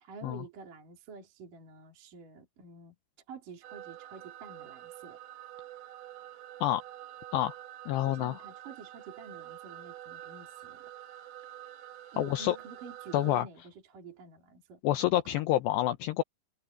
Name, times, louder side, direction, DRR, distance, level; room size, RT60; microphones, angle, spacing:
voice 1, 0.0-2.9 3.3-5.2 8.1-10.9 12.1-14.8 15.1-15.4, right 5 dB, 45° right, 5.0 m, -48 dB
sound 1, 3.6-13.4, right 12 dB, 65° right, 2.7 m, -47 dB
voice 2, 7.9-8.3 12.2-12.6 13.1-13.5 14.8-16.2, left 13 dB, 80° left, 2.5 m, -28 dB
omnidirectional pair, 5.7 m